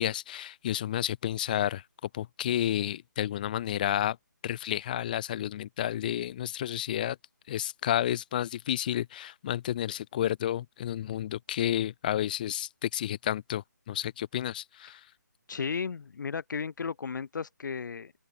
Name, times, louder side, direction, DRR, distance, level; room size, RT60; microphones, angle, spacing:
voice 1, 0.0-4.2 4.4-7.2 7.5-15.1, left 11 dB, 25° left, 0.8 m, -31 dB
voice 2, 15.5-18.1, left 6 dB, 75° left, 0.4 m, -34 dB
open air
hypercardioid pair, 160°, 10 cm